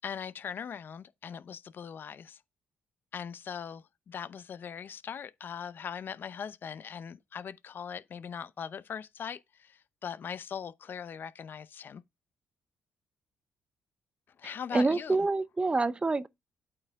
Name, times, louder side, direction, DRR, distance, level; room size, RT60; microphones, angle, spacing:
voice 1, 0.0-2.4 3.1-12.0 14.4-15.2, left 7 dB, 55° left, 0.6 m, -40 dB
voice 2, 14.4-16.3, right 3 dB, 25° right, 0.6 m, -27 dB
8.6 x 4.5 x 3.5 m
supercardioid pair, 65°, 4 cm